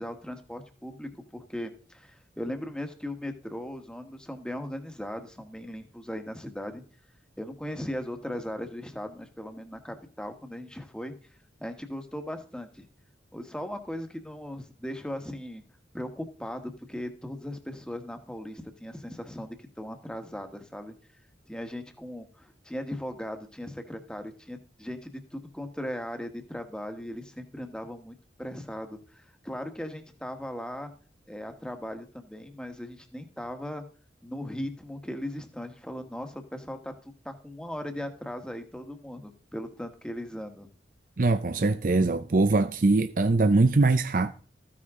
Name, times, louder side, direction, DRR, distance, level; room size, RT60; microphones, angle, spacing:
voice 1, 0.0-6.8 7.4-11.1 11.6-12.9 13.3-15.6 15.9-20.9 21.5-30.9 31.3-33.8 34.2-40.7, left 1 dB, 5° left, 1.4 m, -38 dB
voice 2, 41.2-44.3, right 3 dB, 45° right, 0.6 m, -22 dB
14.5 x 9.7 x 3.7 m
head